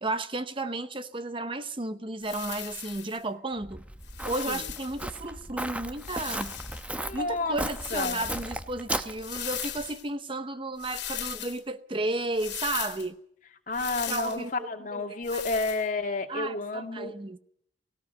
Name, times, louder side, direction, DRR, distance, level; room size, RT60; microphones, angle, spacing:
voice 1, 0.0-3.8 4.2-6.6 7.1-13.2 14.1-15.0 15.3-15.4 16.3-17.4, right 2 dB, 30° right, 0.9 m, -33 dB
sound 1, 2.2-3.2 4.0-5.0 6.0-6.9 7.7-8.5 9.2-10.1 10.8-11.6 12.3-13.1 13.7-14.4 15.2-15.8, left 12 dB, 60° left, 2.7 m, -38 dB
Walk footsteps, 3.6-9.9, right 1 dB, 5° right, 0.9 m, -36 dB
voice 2, 7.0-7.6 7.9-8.3 13.7-17.1, left 3 dB, 45° left, 2.4 m, -31 dB
18.5 x 17.5 x 8.1 m
head